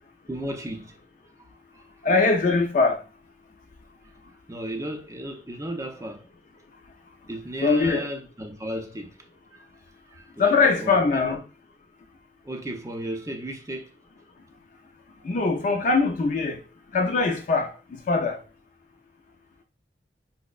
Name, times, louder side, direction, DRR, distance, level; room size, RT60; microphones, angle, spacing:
voice 1, 0.3-1.0 1.7-1.9 4.5-6.3 7.3-9.2 9.5-9.7 10.1-11.4 12.4-14.0, right 1 dB, 20° right, 0.5 m, -35 dB
voice 2, 2.0-3.0 7.6-8.1 10.4-11.4 15.2-16.6 16.9-17.7 18.1-18.4, left 4 dB, 45° left, 0.4 m, -21 dB
5.1 x 2.0 x 2.4 m
head